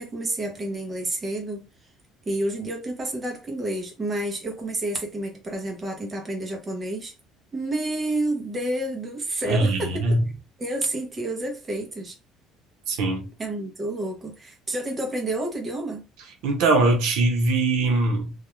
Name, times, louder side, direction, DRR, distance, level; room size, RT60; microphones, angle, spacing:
voice 1, 0.0-1.7 2.3-7.1 7.5-10.2 10.6-12.2 13.4-16.1, right 1 dB, 15° right, 0.7 m, -29 dB
voice 2, 9.4-10.2 12.9-13.3 16.4-18.3, right 2 dB, 80° right, 0.9 m, -21 dB
2.3 x 2.2 x 3.0 m
cardioid pair, 170°, 0 cm